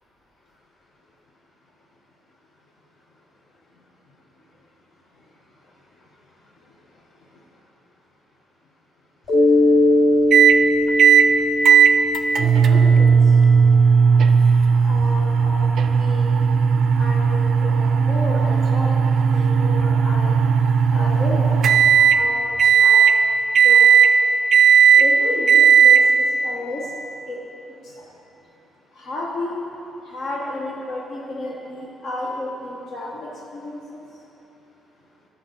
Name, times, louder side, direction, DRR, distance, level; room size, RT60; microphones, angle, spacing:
Mallet percussion, 9.3-13.7, left 1 dB, 45° left, 1.2 m, -20 dB
sound 1, 10.3-10.6 11.0-11.3 11.7-22.2 22.6-23.2 23.6-24.1 24.5-25.1 25.5-26.0, right 6 dB, 65° right, 0.3 m, -15 dB
voice 1, 12.4-13.3 14.8-16.3 16.9-19.0 19.3-20.4 20.9-21.6 21.9-23.1 23.6-24.1 24.9-26.9 27.2-27.4 27.8-28.0 28.9-29.7 30.0-34.0, left 1 dB, 75° left, -4 dB, 1.1 m, -32 dB
11.0 x 6.0 x 4.0 m, 3.0 s
cardioid pair, 90°, 0 cm